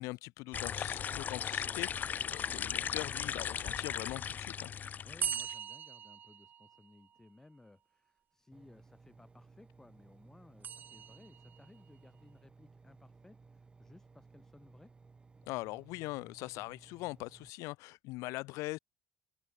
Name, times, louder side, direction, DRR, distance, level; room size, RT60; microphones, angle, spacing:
voice 1, 0.0-4.7 15.5-18.8, left 22 dB, 80° left, 1.1 m, -42 dB
sound 1, 0.5-5.5, left 8 dB, 35° left, 0.9 m, -37 dB
voice 2, 5.0-14.9, left 2 dB, 10° left, 5.7 m, -60 dB
sound 2, 5.2-7.2 10.6-11.7, right 9 dB, 35° right, 0.4 m, -40 dB
Engine, 8.5-17.5, right 4 dB, 20° right, 5.7 m, -60 dB
cardioid pair, 140°, 5 cm